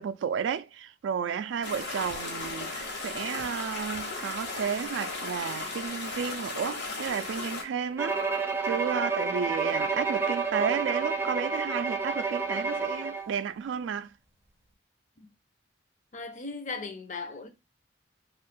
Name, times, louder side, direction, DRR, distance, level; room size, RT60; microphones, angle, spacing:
voice 1, 0.0-8.2 8.6-14.1, right 7 dB, 80° right, 0.3 m, -32 dB
sound 1, 1.6-7.6, left 3 dB, 65° left, 1.1 m, -36 dB
Bowed string instrument, 8.0-13.3, right 4 dB, 15° right, 0.5 m, -29 dB
voice 2, 16.1-17.5, left 4 dB, 45° left, 0.6 m, -37 dB
2.6 x 2.4 x 3.6 m
head